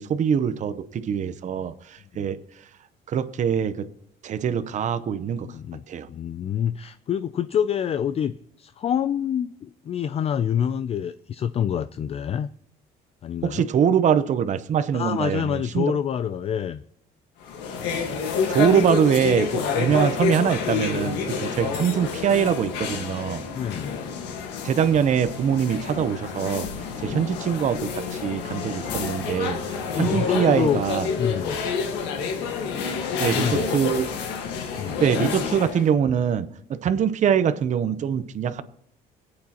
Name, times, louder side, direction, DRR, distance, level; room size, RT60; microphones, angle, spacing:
voice 1, 0.0-2.4 3.1-3.9 4.2-5.5 5.9-6.1 13.4-15.9 18.5-23.4 24.6-26.7 27.0-31.1 33.2-34.1 35.0-38.6, right 8 dB, 45° right, 11 dB, 0.7 m, -23 dB
voice 2, 6.1-12.5 13.2-13.6 14.9-16.8 19.9-20.1 21.6-21.8 23.5-24.0 27.0-27.3 29.9-30.8 31.2-31.6 33.2-33.7 34.8-35.0, left 9 dB, 35° left, 12 dB, 0.4 m, -27 dB
sound 1, 17.4-35.9, left 5 dB, 90° left, 1.5 m, -28 dB
26.0 x 8.6 x 2.9 m, 0.72 s
cardioid pair, 110°, 17 cm